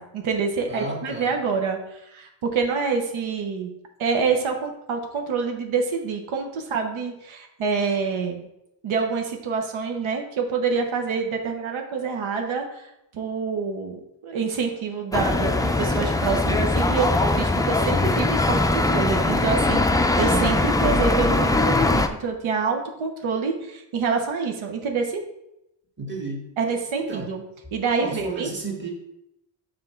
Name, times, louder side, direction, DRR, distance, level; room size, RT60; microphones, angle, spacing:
voice 1, 0.0-3.7 4.0-8.5 8.8-25.2 26.6-27.4 27.7-28.5, right 5 dB, 90° right, 3 dB, 0.9 m, -27 dB
voice 2, 0.7-1.4 26.0-26.4 26.9-27.3 28.0-28.9, right 3 dB, 25° right, -1 dB, 1.7 m, -33 dB
sound 1, 15.1-22.1, left 2 dB, 10° left, 0.3 m, -21 dB
5.8 x 3.8 x 5.6 m, 0.84 s
cardioid pair, 95°, 46 cm